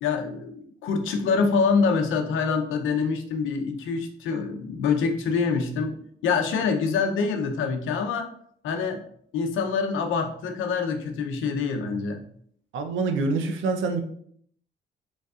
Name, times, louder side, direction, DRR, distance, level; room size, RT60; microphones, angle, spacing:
voice 1, 0.0-5.9 6.2-8.3 8.6-9.0 9.3-12.2, left 5 dB, 85° left, 5 dB, 0.7 m, -25 dB
voice 2, 12.7-14.0, right 3 dB, 80° right, 6 dB, 0.6 m, -26 dB
5.2 x 3.2 x 2.4 m, 0.64 s
cardioid pair, 90°, 20 cm